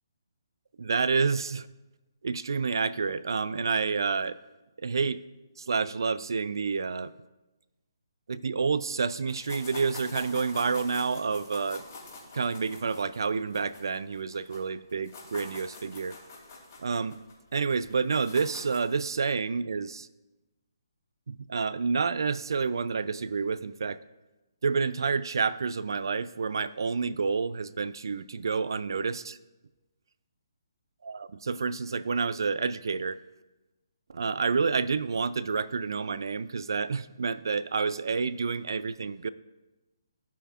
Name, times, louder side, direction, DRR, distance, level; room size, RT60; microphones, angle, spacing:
voice 1, 0.8-1.7 2.2-4.4 4.8-5.2 5.6-7.1 8.3-11.8 12.3-16.2 16.8-17.2 17.5-20.1 21.3-24.0 24.6-29.4 31.0-33.2 34.1-39.3, right 5 dB, 75° right, 16 dB, 0.4 m, -29 dB
sound 1, 9.3-14.6 14.9-19.0, left 3 dB, 50° left, 2.8 m, -45 dB
15.5 x 5.7 x 2.5 m, 1.1 s
hypercardioid pair, 150°, 2 cm